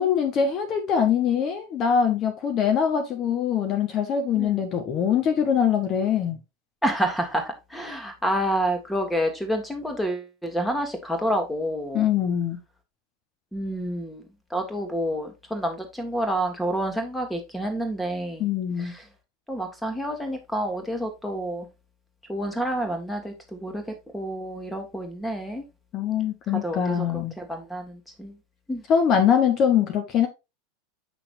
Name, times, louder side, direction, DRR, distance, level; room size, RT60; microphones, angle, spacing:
voice 1, 0.0-6.4 11.9-12.6 18.4-18.9 25.9-27.3 28.9-30.3, left 8 dB, 35° left, 1.2 m, -23 dB
voice 2, 6.8-12.1 13.5-14.2 14.5-18.5 18.8-19.0 19.5-21.7 22.3-23.8 24.1-25.6 26.6-27.0 27.4-28.3 28.7-28.8, right 1 dB, 5° left, 1.8 m, -28 dB
8.3 x 5.9 x 2.6 m
figure-of-eight pair, 85°, 0 cm